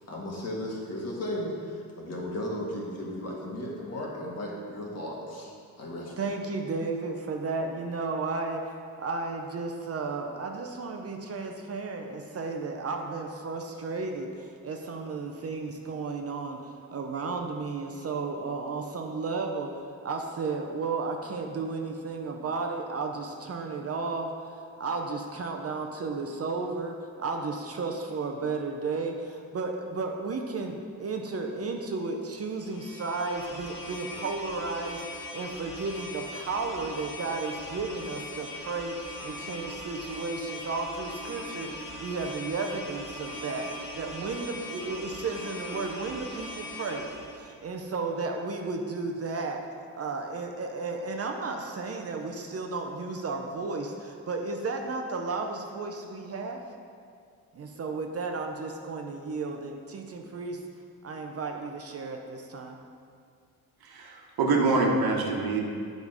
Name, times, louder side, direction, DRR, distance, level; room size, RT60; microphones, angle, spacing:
voice 1, 0.1-5.5 5.8-6.2, left 1 dB, 45° left, -3 dB, 1.7 m, -35 dB
voice 2, 6.2-19.7 20.0-38.9 39.2-49.7 49.9-56.6 57.5-60.6 61.0-62.8, right 3 dB, 40° right, 3 dB, 0.6 m, -33 dB
sound 1, 32.6-47.4, left 1 dB, 65° left, 1.9 m, -40 dB
voice 3, 63.8-65.6, right 3 dB, 85° right, 0 dB, 1.2 m, -25 dB
9.5 x 5.2 x 4.8 m, 2.2 s
wide cardioid pair, 150°, 36 cm